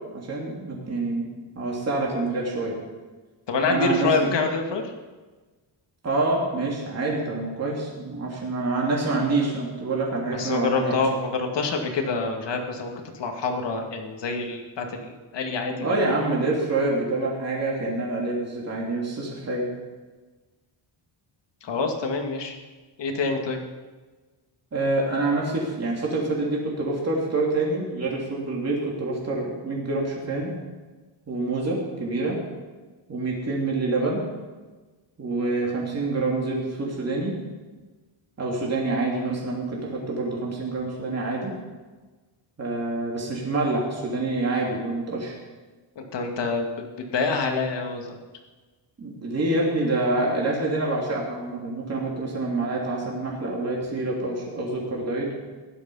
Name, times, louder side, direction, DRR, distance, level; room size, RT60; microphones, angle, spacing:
voice 1, 0.1-1.3 1.5-2.8 3.7-4.3 6.0-11.0 15.8-19.7 24.7-30.6 31.3-32.4 33.1-34.3 35.2-37.3 38.4-41.6 42.6-45.3 49.0-55.4, right 2 dB, 30° right, -3 dB, 3.0 m, -26 dB
voice 2, 3.5-4.9 10.3-16.0 21.6-22.6 23.0-23.6 46.0-48.2, left 4 dB, 60° left, 3 dB, 2.1 m, -26 dB
16.0 x 11.5 x 5.6 m, 1.3 s
wide cardioid pair, 155°, 49 cm